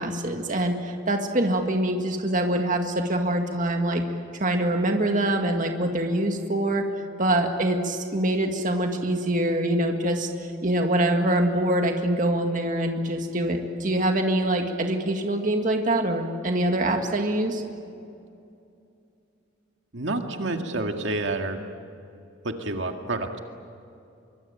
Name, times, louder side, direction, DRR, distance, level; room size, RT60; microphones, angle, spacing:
voice 1, 0.0-4.0 4.4-6.9 7.2-10.3 10.6-17.6, right 1 dB, 40° right, 4 dB, 1.9 m, -24 dB
voice 2, 19.9-21.6 22.4-23.4, right 2 dB, 65° right, 4 dB, 2.0 m, -29 dB
24.5 x 24.0 x 9.0 m, 2.6 s
head